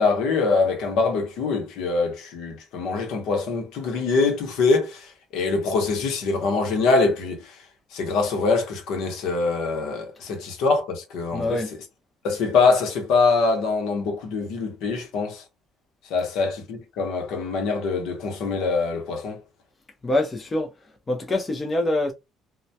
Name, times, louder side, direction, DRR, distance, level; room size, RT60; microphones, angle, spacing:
voice 1, 0.0-7.6 7.9-11.6 12.2-15.4 16.1-19.4, left 4 dB, 80° left, 0.8 m, -24 dB
voice 2, 11.3-11.7 20.0-20.7 21.1-22.1, left 2 dB, 20° left, 0.5 m, -24 dB
2.2 x 2.1 x 2.7 m
cardioid pair, 140°, 0 cm